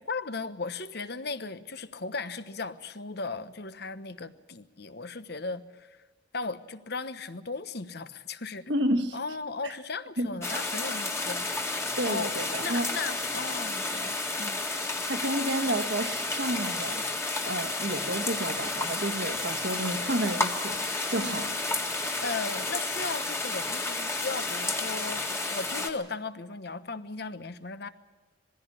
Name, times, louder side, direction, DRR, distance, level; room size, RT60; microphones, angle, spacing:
voice 1, 0.0-6.0 6.3-8.7 9.1-11.5 12.0-14.6 21.1-21.6 22.2-27.9, left 4 dB, 55° left, 12 dB, 1.2 m, -37 dB
voice 2, 8.7-9.2 9.6-9.7 10.2-10.3 12.0-12.9 15.1-17.2 17.4-20.8 21.1-21.5, right 1 dB, 65° right, 8 dB, 1.7 m, -30 dB
sound 1, 10.4-25.9, left 2 dB, 15° left, 1.9 m, -31 dB
21.5 x 15.5 x 9.9 m, 1.2 s
head